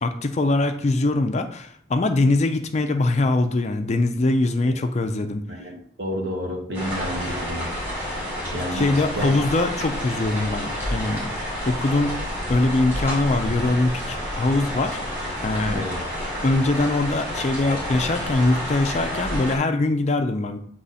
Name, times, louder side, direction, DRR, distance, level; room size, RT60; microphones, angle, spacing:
voice 1, 0.0-5.5 8.7-12.1 12.5-15.0 15.4-15.9 16.4-20.6, left 2 dB, 35° left, 7 dB, 0.4 m, -22 dB
voice 2, 5.5-7.7 8.5-9.3 15.6-16.0, equal, 60° right, 0 dB, 1.2 m, -30 dB
sound 1, 6.7-19.6, equal, 10° right, 2.1 m, -29 dB
7.9 x 3.1 x 4.1 m, 0.63 s
head